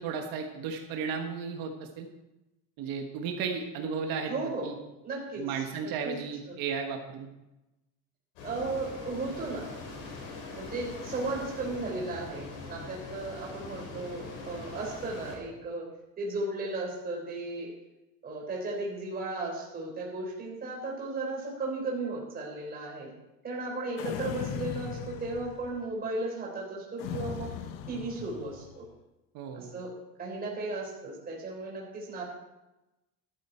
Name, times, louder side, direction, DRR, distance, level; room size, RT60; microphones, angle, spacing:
voice 1, 0.0-2.1 2.8-4.3 4.6-4.7 5.4-7.3 29.3-29.7, right 6 dB, 55° right, 3 dB, 1.5 m, -34 dB
voice 2, 4.3-4.7 5.0-6.1 8.4-9.7 10.5-15.9 16.2-17.7 18.2-23.1 23.4-27.5 27.9-28.9 29.5-29.9 30.2-32.2, right 2 dB, 20° right, -2 dB, 3.8 m, -35 dB
sound 1, 8.4-15.4, left 3 dB, 85° left, 4.8 m, -42 dB
sound 2, 24.0-25.8 27.0-28.8, left 8 dB, 50° left, 1.0 m, -38 dB
13.5 x 12.5 x 4.5 m, 0.98 s
cardioid pair, 180°, 41 cm